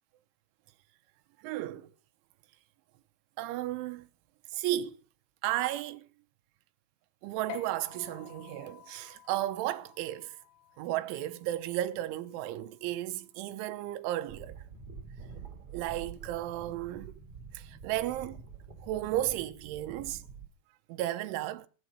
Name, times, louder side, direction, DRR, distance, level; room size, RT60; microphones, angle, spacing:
voice 1, 1.4-1.9 3.4-4.1 4.5-5.0 5.4-6.0 7.2-10.3 10.8-14.5 15.7-17.1 17.5-18.4 18.8-20.2 20.9-21.7, right 14 dB, 85° right, 3.3 m, -34 dB
sound 1, 7.5-14.3, left 14 dB, 80° left, 3.3 m, -52 dB
sound 2, 14.3-20.5, right 6 dB, 35° right, 3.1 m, -47 dB
17.0 x 8.2 x 6.6 m
omnidirectional pair, 5.4 m